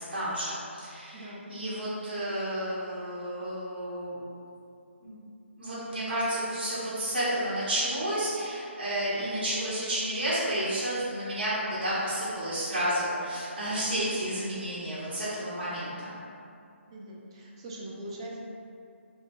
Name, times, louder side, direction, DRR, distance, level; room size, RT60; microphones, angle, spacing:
voice 1, 0.0-4.2 5.0-5.2 5.6-16.2, right 1 dB, 50° right, -10 dB, 0.9 m, -31 dB
voice 2, 1.1-1.9 16.9-18.4, right 1 dB, 25° right, -3 dB, 0.3 m, -42 dB
2.6 x 2.1 x 2.9 m, 2.5 s
hypercardioid pair, 155°, 7 cm